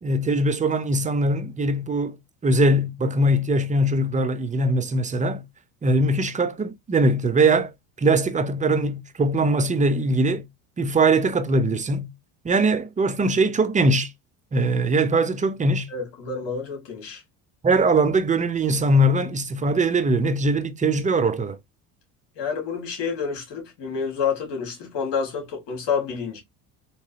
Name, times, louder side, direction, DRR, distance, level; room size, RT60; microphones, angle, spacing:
voice 1, 0.0-2.2 2.4-5.4 5.8-7.7 8.0-10.4 10.8-12.1 12.4-14.1 14.5-15.9 17.6-21.6, right 2 dB, 15° right, 0.6 m, -21 dB
voice 2, 15.9-17.2 22.4-26.4, left 6 dB, 60° left, 2.2 m, -28 dB
3.7 x 3.0 x 2.8 m
supercardioid pair, 80°, 47 cm